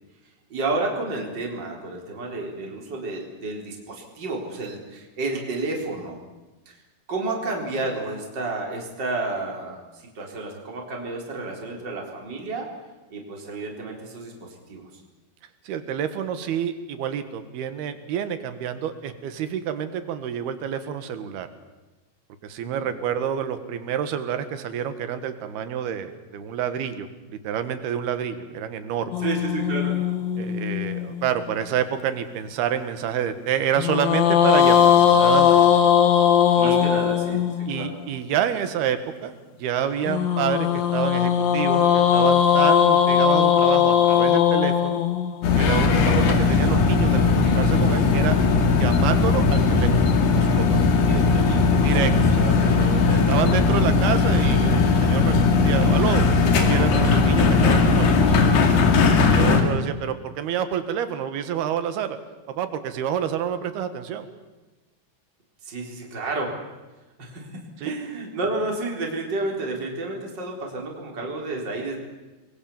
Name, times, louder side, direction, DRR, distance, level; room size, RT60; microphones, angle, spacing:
voice 1, 0.5-6.2 6.7-6.8 7.1-12.7 13.1-15.0 22.6-22.9 29.2-29.9 36.5-37.4 37.7-37.9 51.0-52.4 59.5-59.7 65.6-66.5 67.2-67.5 67.8-72.0, right 2 dB, 25° right, 0 dB, 4.7 m, -31 dB
voice 2, 15.7-21.5 22.4-29.2 30.4-35.7 36.6-36.9 37.7-39.3 39.6-45.0 45.6-48.4 48.8-49.9 50.4-50.6 51.8-56.2 56.7-58.4 59.1-62.2 62.5-64.3 67.8-68.0, right 9 dB, 80° right, 10 dB, 3.6 m, -28 dB
sound 1, 29.1-31.5 33.8-37.9 40.1-46.3, left 9 dB, 70° left, 3.6 m, -19 dB
sound 2, 45.4-59.6, left 4 dB, 90° left, 4.4 m, -18 dB
29.0 x 22.0 x 7.2 m, 1.1 s
omnidirectional pair, 4.5 m